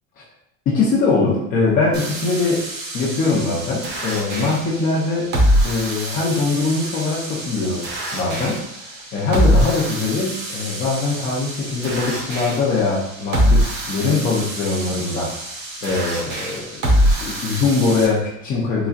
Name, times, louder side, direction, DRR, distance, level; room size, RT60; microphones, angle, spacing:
voice 1, 0.7-5.3 5.6-15.3 15.8-18.9, left 3 dB, 25° left, -5 dB, 0.5 m, -22 dB
sound 1, 1.9-18.1, equal, 60° right, 1.4 m, -24 dB
3.9 x 3.3 x 2.4 m, 0.75 s
cardioid pair, 180°, 37 cm